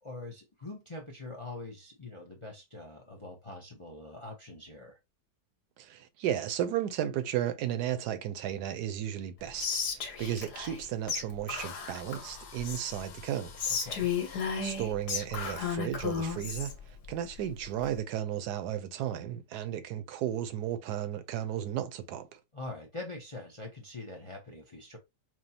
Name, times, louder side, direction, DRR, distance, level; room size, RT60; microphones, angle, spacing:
voice 1, 0.0-5.0 13.7-14.1 22.5-25.0, left 2 dB, 40° left, 0.4 m, -44 dB
voice 2, 5.8-13.7 14.6-16.7 17.1-22.4, right 10 dB, 70° right, 1.2 m, -34 dB
Whispering, 9.6-10.8 11.1-11.2 11.5-13.0 13.6-16.7, left 6 dB, 65° left, 1.7 m, -33 dB
Drill, 10.9-11.0 11.5-14.4 15.3-15.5, left 7 dB, 85° left, 1.6 m, -49 dB
6.1 x 2.1 x 2.8 m
omnidirectional pair, 1.9 m